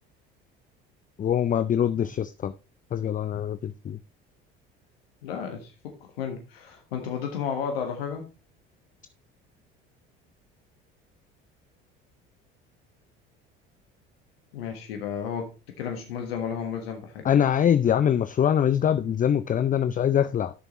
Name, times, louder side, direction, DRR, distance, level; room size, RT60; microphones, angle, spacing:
voice 1, 1.2-2.5 2.9-4.0 17.2-20.5, left 9 dB, 30° left, 14 dB, 0.5 m, -23 dB
voice 2, 5.2-5.7 6.0-8.2 14.5-17.2, left 7 dB, 85° left, 4 dB, 1.5 m, -33 dB
12.5 x 6.7 x 3.0 m, 0.31 s
hypercardioid pair, 65°, 30 cm